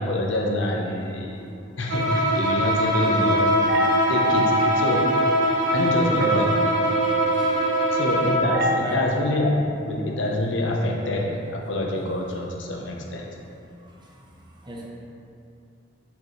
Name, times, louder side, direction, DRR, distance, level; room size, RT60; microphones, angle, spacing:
voice 1, 0.0-1.4 1.8-3.5 4.1-5.2 5.7-6.5 7.9-13.3, left 1 dB, 80° left, 0 dB, 0.9 m, -26 dB
Bowed string instrument, 1.9-8.5, equal, 85° right, 1.3 m, -22 dB
sound 1, 3.2-8.9, right 3 dB, 55° right, 0.5 m, -27 dB
voice 2, 13.8-14.2 14.6-14.9, equal, 25° right, -3 dB, 0.8 m, -39 dB
7.3 x 5.3 x 3.2 m, 2.5 s
head